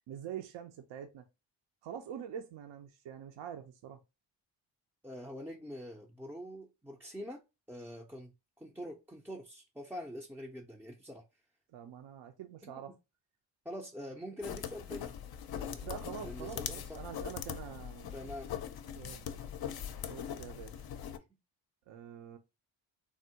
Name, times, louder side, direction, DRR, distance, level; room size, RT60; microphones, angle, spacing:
voice 1, 0.1-1.2 1.8-4.0 11.7-12.9 15.8-18.2 18.9-19.2 20.0-20.7 21.9-22.4, right 9 dB, 65° right, 0.6 m, -45 dB
voice 2, 5.0-7.4 7.7-8.3 8.6-11.2 13.6-15.1 15.5-15.9 16.2-17.0 18.1-18.5, equal, 5° right, 0.4 m, -45 dB
sound 1, 14.4-21.2, left 9 dB, 55° left, 0.5 m, -41 dB
3.5 x 2.1 x 2.7 m
cardioid pair, 65°, 47 cm